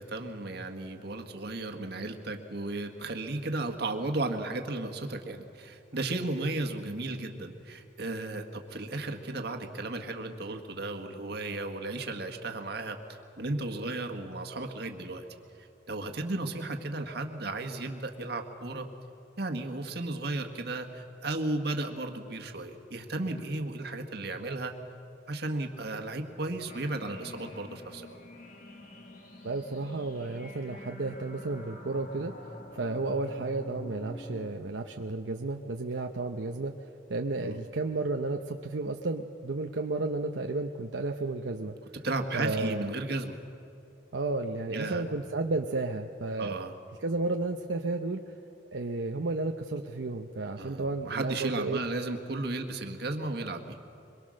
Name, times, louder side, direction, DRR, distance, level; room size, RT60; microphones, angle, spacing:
voice 1, 0.0-13.0 13.4-15.2 15.9-18.9 19.4-24.7 25.3-28.0 37.4-37.6 42.0-43.4 44.7-45.0 46.4-46.7 50.6-53.8, right 2 dB, 60° right, 5 dB, 1.7 m, -34 dB
sound 1, 26.7-34.5, left 1 dB, 50° left, 2.2 m, -45 dB
voice 2, 29.4-36.7 37.1-41.7 42.3-42.8 44.1-46.5 47.0-48.2 48.7-51.8, right 3 dB, 80° right, 3 dB, 0.8 m, -32 dB
24.0 x 22.5 x 6.4 m, 2.8 s
head